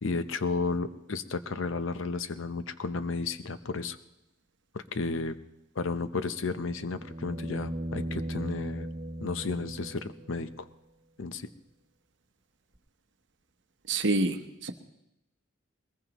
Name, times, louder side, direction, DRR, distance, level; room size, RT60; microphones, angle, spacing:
voice 1, 0.0-4.0 4.7-5.4 5.7-8.9 9.2-10.7 11.2-11.5, left 3 dB, 65° left, 12 dB, 0.7 m, -33 dB
sound 1, 6.3-10.3 12.7-12.8, right 1 dB, 35° right, 2.4 m, -37 dB
voice 2, 13.9-14.7, right 2 dB, 60° right, 8 dB, 1.0 m, -27 dB
21.5 x 20.5 x 3.0 m, 0.87 s
head